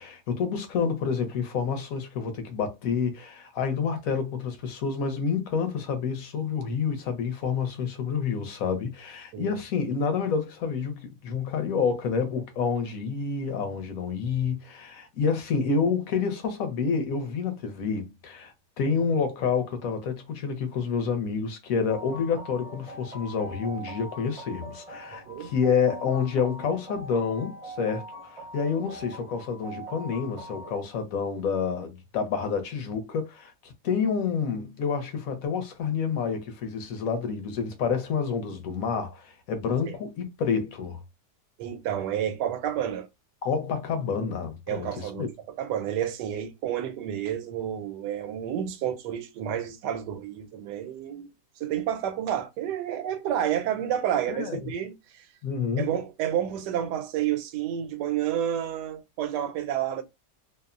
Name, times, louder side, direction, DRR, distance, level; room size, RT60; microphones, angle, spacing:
voice 1, 0.0-41.0 43.4-45.3 54.3-54.6 55.4-55.9, left 6 dB, 65° left, 1.0 m, -28 dB
sound 1, 21.9-30.8, right 1 dB, 40° right, 0.5 m, -42 dB
voice 2, 41.6-43.1 44.7-45.3 45.6-51.3 51.6-55.3 55.8-60.0, right 10 dB, 90° right, 1.2 m, -30 dB
2.8 x 2.0 x 2.4 m
omnidirectional pair, 1.8 m